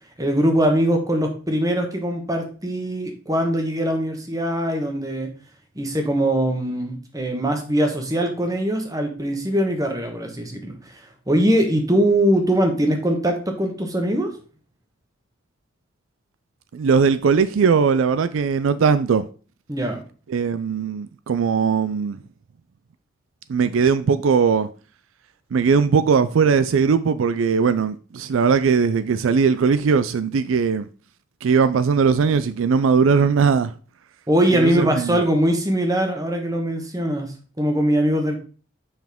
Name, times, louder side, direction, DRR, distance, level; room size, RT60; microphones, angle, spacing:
voice 1, 0.2-5.3 5.7-11.0 11.3-14.3 19.7-20.0 34.3-38.4, right 1 dB, 15° right, 1.3 m, -22 dB
voice 2, 16.7-19.2 20.3-22.2 23.5-24.7 25.5-30.9 31.4-33.7 34.6-35.2, right 5 dB, 70° right, 0.4 m, -19 dB
7.1 x 5.8 x 3.5 m
head